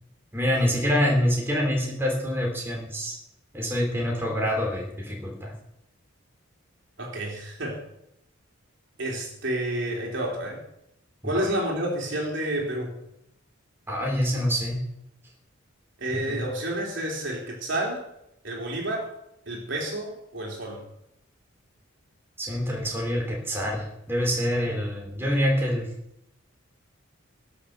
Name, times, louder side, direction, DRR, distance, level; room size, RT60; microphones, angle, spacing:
voice 1, 0.3-3.1 3.5-5.5 11.3-11.4 13.9-14.8 16.1-16.4 22.4-25.9, equal, 10° right, -2 dB, 3.5 m, -26 dB
voice 2, 7.0-7.8 9.0-10.6 11.2-13.0 16.0-18.0 18.4-19.1 19.5-20.8, right 1 dB, 60° right, -1 dB, 3.7 m, -30 dB
19.5 x 6.8 x 6.8 m, 0.81 s
head